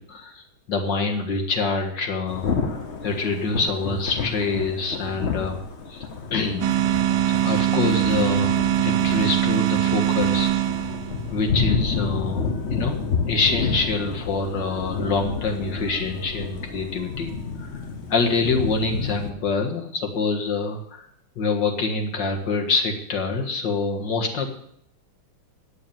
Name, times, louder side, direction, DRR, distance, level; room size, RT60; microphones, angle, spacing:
voice 1, 0.1-5.6 5.9-6.8 7.3-10.5 11.3-13.0 13.3-17.3 17.6-17.7 18.1-21.1 21.4-24.5, left 4 dB, 60° left, 3 dB, 2.3 m, -26 dB
Thunder / Rain, 2.3-19.3, left 5 dB, 40° left, 1.0 m, -30 dB
sound 1, 6.6-11.3, right 13 dB, 75° right, 1.3 m, -22 dB
9.9 x 7.2 x 9.1 m, 0.70 s
omnidirectional pair, 2.3 m